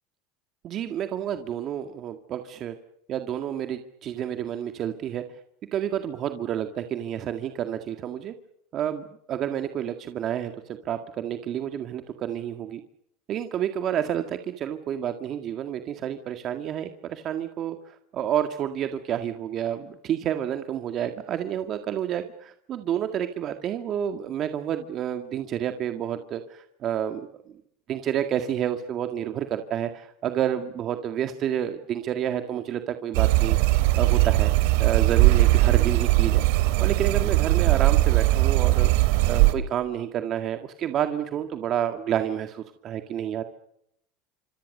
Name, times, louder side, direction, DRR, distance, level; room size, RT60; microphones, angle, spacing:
voice 1, 0.6-2.7 3.1-5.2 5.7-8.3 8.7-12.8 13.3-27.3 27.9-33.6 34.0-34.5 34.8-36.4 36.8-38.9 39.3-43.4, right 10 dB, 45° right, 7 dB, 1.9 m, -29 dB
sound 1, 33.1-39.5, right 18 dB, 75° right, 2.4 m, -20 dB
26.5 x 26.5 x 6.7 m, 0.74 s
supercardioid pair, 110°, 0 cm